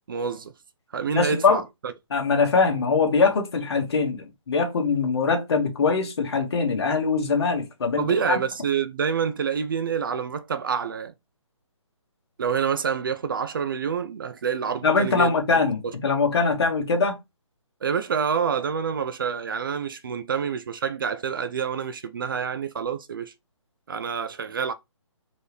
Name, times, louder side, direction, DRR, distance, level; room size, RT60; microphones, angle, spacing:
voice 1, 0.1-0.5 0.9-1.9 8.0-11.1 12.4-16.0 17.8-23.3 23.9-24.7, right 6 dB, 40° right, 0.4 m, -27 dB
voice 2, 1.1-1.6 2.1-8.4 14.8-17.2, left 4 dB, 50° left, 1.6 m, -22 dB
4.4 x 3.2 x 3.3 m
hypercardioid pair, 160°, 17 cm